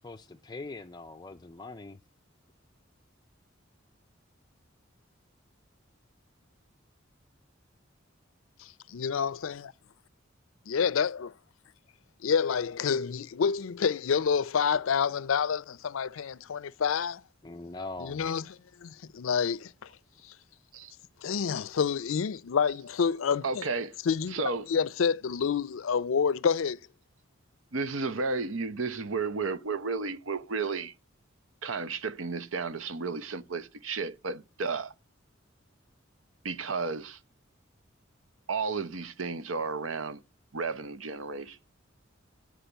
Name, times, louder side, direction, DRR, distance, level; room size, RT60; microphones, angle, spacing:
voice 1, 0.0-2.0 17.4-18.2, left 3 dB, 20° left, 0.4 m, -42 dB
voice 2, 8.6-9.7 10.7-11.3 12.2-17.2 18.0-18.5 18.8-19.9 20.2-20.3 21.2-23.6 24.1-24.4 24.7-26.8, left 6 dB, 80° left, 0.5 m, -28 dB
voice 3, 23.4-24.0 24.3-24.7 27.7-30.9 31.6-34.9 36.4-37.2 38.5-40.2 40.5-41.6, right 4 dB, 80° right, 0.8 m, -33 dB
10.0 x 4.9 x 8.0 m
head